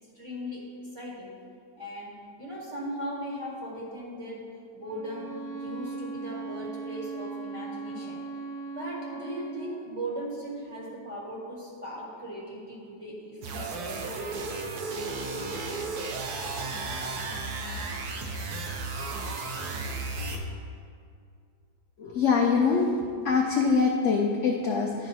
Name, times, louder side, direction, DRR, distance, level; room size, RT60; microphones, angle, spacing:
voice 1, 0.1-0.6 0.9-1.3 1.8-4.4 4.7-8.2 8.7-14.1, equal, 20° right, -5 dB, 1.2 m, -38 dB
Bowed string instrument, 4.8-9.7, right 4 dB, 85° right, 2.4 m, -38 dB
sound 1, 13.4-20.4, right 3 dB, 65° right, 1.2 m, -34 dB
voice 2, 22.0-22.9 23.2-25.1, left 5 dB, 70° left, 0 dB, 0.7 m, -24 dB
11.0 x 4.5 x 4.1 m, 2.4 s
omnidirectional pair, 1.9 m